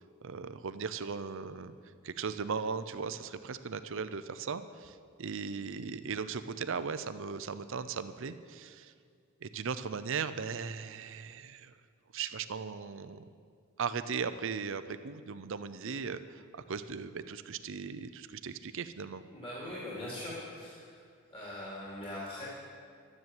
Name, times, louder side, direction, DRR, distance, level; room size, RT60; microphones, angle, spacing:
voice 1, 0.2-1.7 2.0-8.9 9.4-11.7 12.1-13.2 13.8-19.2, right 5 dB, 60° right, 12 dB, 0.6 m, -38 dB
voice 2, 19.3-20.8 21.3-22.5, left 1 dB, 25° left, -7 dB, 2.8 m, -41 dB
12.0 x 9.7 x 7.8 m, 2.2 s
head